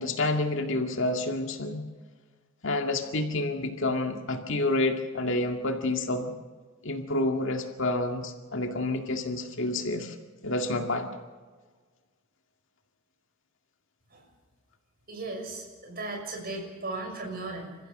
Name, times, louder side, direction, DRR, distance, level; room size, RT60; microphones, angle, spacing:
voice 1, 0.0-1.8 2.6-6.3 6.8-10.2 10.4-11.1, left 2 dB, 65° left, 4 dB, 2.1 m, -29 dB
voice 2, 15.1-17.8, right 2 dB, 45° right, 1 dB, 6.5 m, -36 dB
28.5 x 15.0 x 6.7 m, 1.4 s
head